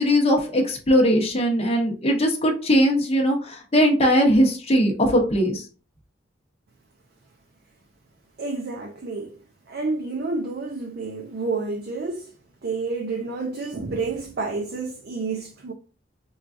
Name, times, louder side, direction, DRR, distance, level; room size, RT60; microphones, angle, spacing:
voice 1, 0.0-5.6, equal, 35° left, 0.8 m, -20 dB
voice 2, 8.4-9.3 9.7-12.3 12.6-15.7, right 3 dB, 60° right, 0.5 m, -29 dB
4.5 x 2.3 x 2.5 m
head